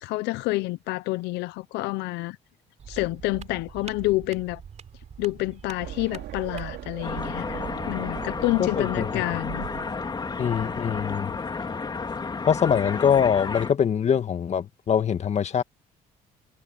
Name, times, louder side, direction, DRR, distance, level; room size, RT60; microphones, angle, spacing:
voice 1, 0.0-2.4 2.9-4.6 5.2-9.6, left 20 dB, 90° left, 0.6 m, -28 dB
sound 1, 2.8-6.9, right 7 dB, 40° right, 4.1 m, -43 dB
sound 2, 5.8-11.4, right 14 dB, 80° right, 4.2 m, -40 dB
sound 3, 7.0-13.7, left 4 dB, 25° left, 2.8 m, -32 dB
voice 2, 8.6-9.2 10.4-11.3 12.5-15.6, left 8 dB, 40° left, 1.7 m, -23 dB
cardioid pair, 110°, 17 cm